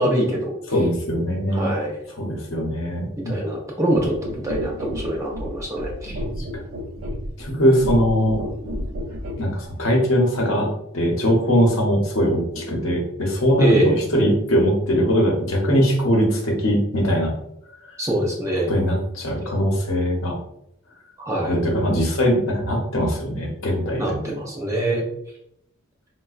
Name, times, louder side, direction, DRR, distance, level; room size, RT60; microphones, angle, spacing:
voice 1, 0.0-0.5 1.5-2.0 3.3-6.2 13.6-14.0 18.0-18.7 21.2-21.6 24.0-25.1, right 1 dB, 15° right, -2 dB, 0.4 m, -23 dB
voice 2, 0.7-1.7 2.2-3.4 6.4-6.5 7.4-8.4 9.4-10.7 10.9-17.3 17.9-18.0 18.7-20.4 21.4-24.3, equal, 65° left, -1 dB, 0.8 m, -21 dB
sound 1, 3.9-9.5 10.4-10.5, equal, 80° right, 0.6 m, -32 dB
3.9 x 2.1 x 2.4 m, 0.77 s
head